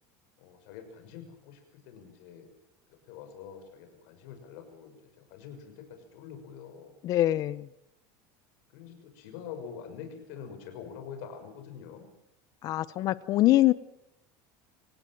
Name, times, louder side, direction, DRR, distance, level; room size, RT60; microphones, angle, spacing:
voice 1, 0.4-2.5 3.1-6.9 8.7-12.1, left 7 dB, 70° left, 6 dB, 6.4 m, -45 dB
voice 2, 7.0-7.7 12.6-13.7, left 15 dB, 40° left, 18 dB, 0.8 m, -24 dB
27.0 x 17.0 x 7.6 m, 0.80 s
cardioid pair, 155°, 9 cm